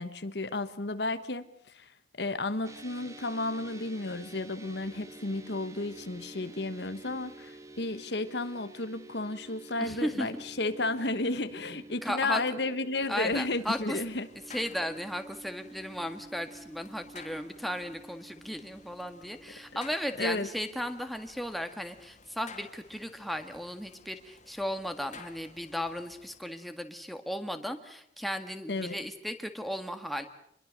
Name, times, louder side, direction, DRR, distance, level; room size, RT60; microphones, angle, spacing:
voice 1, 0.0-1.9 2.2-14.3 20.2-20.5 28.7-29.0, left 2 dB, 65° left, 12 dB, 1.2 m, -33 dB
sound 1, 2.6-20.1, right 2 dB, 20° right, 1.9 m, -50 dB
voice 2, 9.8-10.4 12.0-12.4 13.1-14.0 14.5-30.3, equal, ahead, 6 dB, 1.8 m, -35 dB
sound 2, 13.0-26.4, left 4 dB, 40° left, 2.5 m, -54 dB
27.0 x 22.0 x 6.6 m, 0.72 s
head